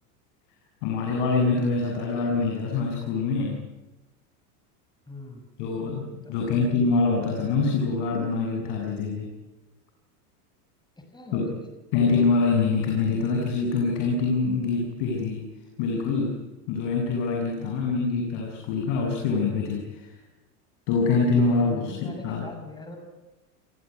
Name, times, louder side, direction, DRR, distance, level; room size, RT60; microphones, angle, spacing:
voice 1, 0.8-3.6 5.6-9.3 11.3-11.5 11.9-15.4 15.8-20.1 20.9-22.5, left 4 dB, 60° left, 1 dB, 7.9 m, -25 dB
voice 2, 5.1-5.4 6.2-6.5 11.1-11.5 17.6-18.0 21.6-23.0, left 2 dB, 10° left, 3 dB, 6.4 m, -41 dB
29.5 x 19.0 x 9.9 m, 1.1 s
supercardioid pair, 115°, 47 cm